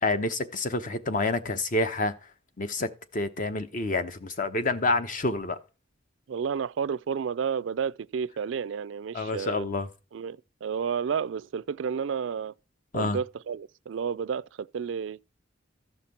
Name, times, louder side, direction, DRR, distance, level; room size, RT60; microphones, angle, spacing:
voice 1, 0.0-2.1 2.6-5.6 9.1-9.9 12.9-13.2, left 2 dB, 45° left, 0.9 m, -28 dB
voice 2, 6.3-9.7 10.1-12.5 12.9-15.3, right 6 dB, 80° right, 0.4 m, -31 dB
14.0 x 5.9 x 4.3 m
head